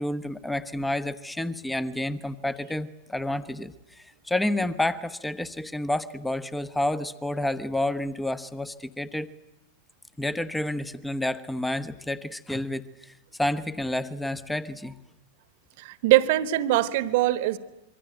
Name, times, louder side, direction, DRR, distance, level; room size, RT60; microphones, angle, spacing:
voice 1, 0.0-9.3 10.2-13.1 13.4-14.9, left 1 dB, 5° left, 15 dB, 1.1 m, -29 dB
voice 2, 15.8-17.6, right 15 dB, 50° right, 15 dB, 1.3 m, -22 dB
26.5 x 23.5 x 9.1 m, 0.90 s
figure-of-eight pair, 90°, 0 cm